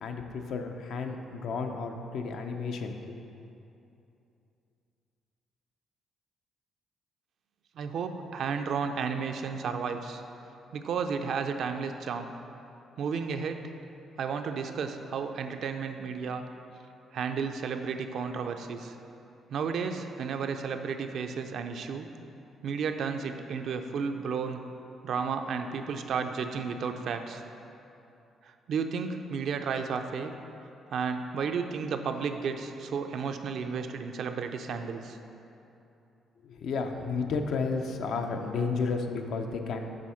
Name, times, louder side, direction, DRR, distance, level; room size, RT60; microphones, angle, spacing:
voice 1, 0.0-3.2 36.4-39.9, left 4 dB, 70° left, 4 dB, 0.5 m, -32 dB
voice 2, 7.8-10.2 10.7-12.3 13.0-13.6 14.2-16.4 17.1-18.9 19.5-22.1 22.6-24.6 25.0-27.4 28.4-30.3 30.9-35.2, right 5 dB, 65° right, 6 dB, 0.4 m, -32 dB
7.6 x 3.5 x 5.7 m, 2.8 s
cardioid pair, 90°, 0 cm